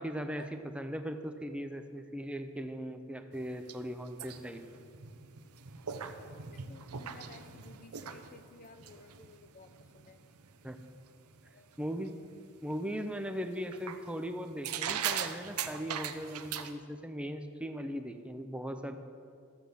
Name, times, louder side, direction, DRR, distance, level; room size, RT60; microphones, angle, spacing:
voice 1, 0.0-4.6 10.6-10.8 11.8-12.1 12.6-19.0, equal, 5° right, 6 dB, 0.6 m, -39 dB
sound 1, 3.3-11.5 11.8-12.4 12.7-12.8 13.7-14.2 14.6-16.7, right 8 dB, 85° right, 0.8 m, -40 dB
voice 2, 6.3-10.2 11.5-11.7, left 3 dB, 35° left, 10 dB, 0.6 m, -55 dB
14.0 x 7.7 x 6.8 m, 2.2 s
head